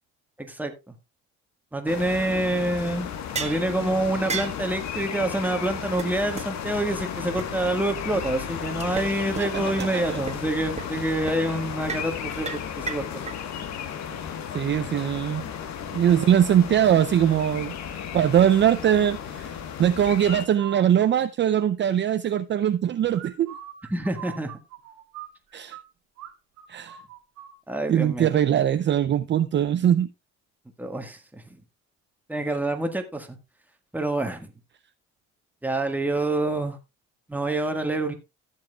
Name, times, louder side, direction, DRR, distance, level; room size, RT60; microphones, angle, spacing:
voice 1, 0.4-0.7 1.7-3.1 3.4-13.3 23.9-24.5 27.7-28.3 30.8-31.6 32.3-33.4 33.9-34.5 35.6-36.8 37.3-38.1, right 1 dB, 5° right, 1.5 m, -27 dB
sound 1, 1.9-20.4, left 8 dB, 70° left, 1.3 m, -34 dB
sound 2, 3.4-3.6 4.3-4.6 5.3-5.4 5.6-5.7 6.0-6.1 6.4-6.5 6.9-7.0 7.4-7.5 8.8-9.1 9.4-9.5 9.8-9.9 10.3-10.4 10.8-11.0 11.3-11.4 11.9-12.1 12.5-13.4, right 4 dB, 20° right, 1.4 m, -32 dB
voice 2, 9.4-10.2 14.5-15.4 15.9-17.7 18.1-19.5 19.8-23.5 25.5-25.8 26.7-27.0 27.9-30.1, right 10 dB, 40° right, 0.5 m, -21 dB
sound 3, 20.2-20.8 23.1-25.8 26.2-26.3 26.6-27.5, right 11 dB, 90° right, 1.7 m, -41 dB
14.5 x 7.5 x 2.3 m
cardioid pair, 110°, 29 cm